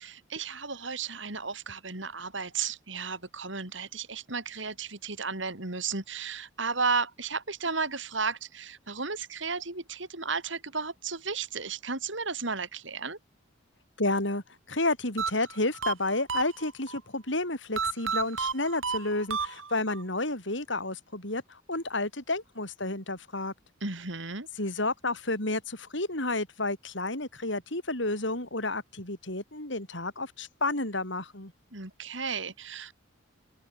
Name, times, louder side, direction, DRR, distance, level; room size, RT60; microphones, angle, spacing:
voice 1, 0.0-13.2 23.8-24.5 31.7-32.9, right 4 dB, 65° right, 4.6 m, -34 dB
voice 2, 14.0-14.4 14.7-23.5 24.6-31.5, left 2 dB, 65° left, 6.7 m, -31 dB
sound 1, 15.2-17.0 17.8-20.0, right 5 dB, 85° right, 6.2 m, -32 dB
open air
head